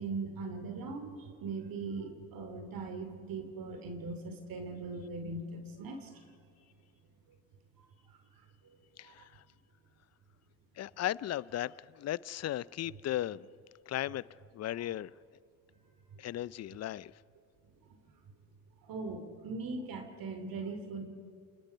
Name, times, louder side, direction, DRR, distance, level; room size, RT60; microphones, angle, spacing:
voice 1, 0.0-6.3 7.8-7.9 8.6-8.8 9.0-9.1 16.1-16.2 18.8-21.0, right 3 dB, 50° right, 2.8 m, -40 dB
voice 2, 9.0-9.3 10.8-13.5 13.9-14.2 14.5-15.1 16.2-17.1, left 13 dB, 40° left, 0.5 m, -36 dB
28.5 x 20.5 x 5.6 m
hypercardioid pair, 70°, 43 cm